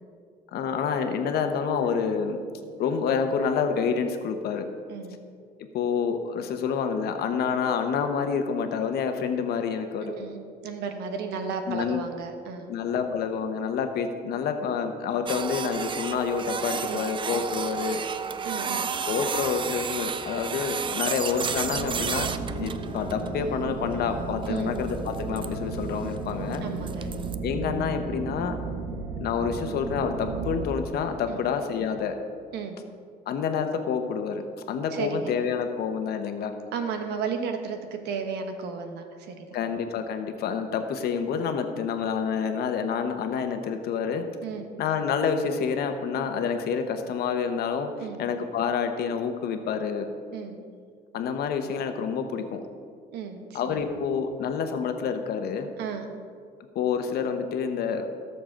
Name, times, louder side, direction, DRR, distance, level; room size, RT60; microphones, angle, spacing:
voice 1, 0.5-2.4 2.8-4.7 5.7-10.1 11.7-12.0 12.7-18.0 19.0-22.3 22.6-26.6 27.4-28.6 29.2-32.2 33.3-34.4 34.7-36.5 39.5-44.3 44.8-47.9 48.2-50.1 51.1-52.6 53.5-55.7 56.7-58.1, left 6 dB, 70° left, 6 dB, 1.1 m, -28 dB
voice 2, 10.0-12.7 16.9-17.0 18.4-18.8 24.5-24.7 26.6-27.1 31.3-31.4 32.5-32.8 34.9-35.3 36.7-39.5 44.4-44.7 48.0-48.2 50.3-50.6 53.1-53.8 55.8-56.1, right 6 dB, 85° right, 6 dB, 1.3 m, -34 dB
Printer, 15.3-27.4, right 6 dB, 30° right, 0.5 m, -33 dB
sound 1, 21.4-30.7, right 4 dB, 60° right, 1.6 m, -34 dB
17.5 x 6.9 x 3.9 m, 2.1 s
cardioid pair, 110°, 17 cm